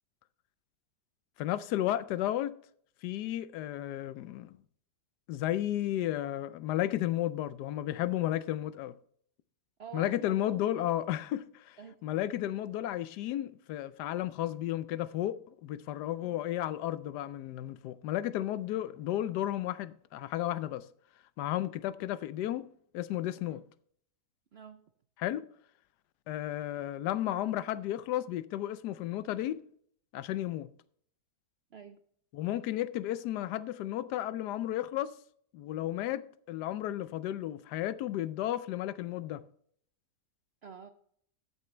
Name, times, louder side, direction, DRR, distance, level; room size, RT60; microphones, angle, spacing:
voice 1, 1.4-2.6 3.0-4.6 5.3-9.0 9.9-11.8 12.0-15.4 15.6-20.9 21.4-22.7 22.9-23.6 25.2-25.5 26.3-29.6 30.1-30.7 32.3-35.1 35.5-39.4, left 13 dB, 85° left, 1.2 m, -33 dB
voice 2, 9.8-10.9 11.8-12.0 16.2-16.4 23.5-23.6 24.5-24.9 31.7-32.0 40.6-40.9, right 6 dB, 65° right, 0.6 m, -47 dB
14.0 x 8.1 x 3.2 m
omnidirectional pair, 1.7 m